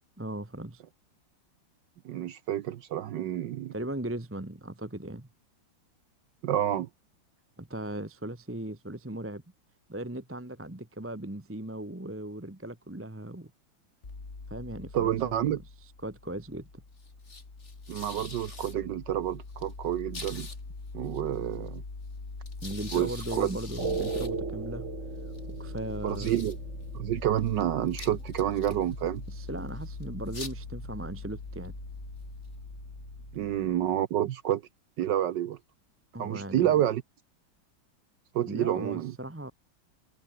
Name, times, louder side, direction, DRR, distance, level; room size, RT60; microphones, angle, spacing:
voice 1, 0.2-0.8 3.7-5.3 7.6-9.4 9.9-13.5 14.5-16.8 22.6-24.9 25.5-26.4 29.3-31.7 36.1-36.8 38.5-39.5, right 1 dB, 10° right, 1.1 m, -38 dB
voice 2, 2.0-3.7 6.4-6.9 14.9-15.6 17.9-20.5 20.9-21.8 22.9-23.5 26.0-26.6 26.9-29.2 33.3-34.6 35.0-35.6 36.2-37.0 38.3-39.1, right 11 dB, 70° right, 1.4 m, -29 dB
sound 1, 14.0-33.9, left 3 dB, 35° left, 3.2 m, -42 dB
sound 2, 23.8-34.0, right 4 dB, 40° right, 2.5 m, -40 dB
omnidirectional pair, 2.1 m